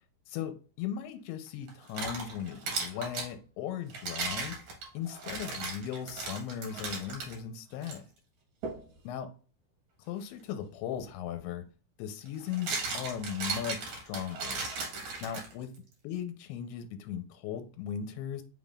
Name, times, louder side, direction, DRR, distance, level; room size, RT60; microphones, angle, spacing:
voice 1, 0.3-4.7 4.9-8.0 9.0-9.3 10.0-11.7 12.0-14.7 15.2-18.4, left 9 dB, 85° left, 2.6 m, -38 dB
sound 1, 1.7-3.3 3.9-7.3 7.8-8.0 8.6-8.8 11.0-11.1 12.3-15.8, right 4 dB, 55° right, 2.4 m, -36 dB
5.7 x 3.7 x 2.4 m
omnidirectional pair, 4.7 m